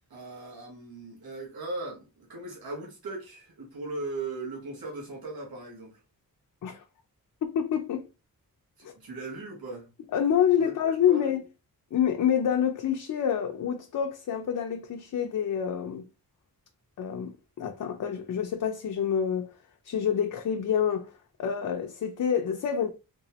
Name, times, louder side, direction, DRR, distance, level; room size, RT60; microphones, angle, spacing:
voice 1, 0.1-6.0 8.8-9.9 10.6-10.7 11.1-11.3, right 2 dB, 90° right, 1.4 m, -38 dB
voice 2, 7.4-8.0 8.8-8.9 10.1-11.4 11.9-16.0 17.0-19.5 19.8-21.1 21.4-22.9, left 8 dB, 60° left, 0.5 m, -27 dB
3.5 x 3.0 x 2.8 m
wide cardioid pair, 170°, 35 cm